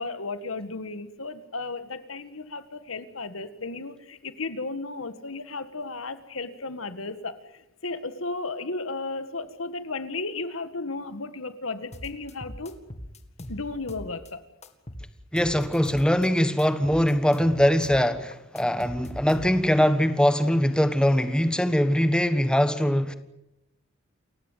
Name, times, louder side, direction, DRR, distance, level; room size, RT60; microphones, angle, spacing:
voice 1, 0.0-12.8 13.5-14.4, left 3 dB, 90° left, 1.8 m, -34 dB
sound 1, 11.9-14.3 14.6-16.3 16.6-19.8, left 1 dB, 35° left, 2.1 m, -41 dB
voice 2, 15.3-23.2, equal, 5° left, 1.4 m, -22 dB
29.0 x 16.0 x 9.2 m
head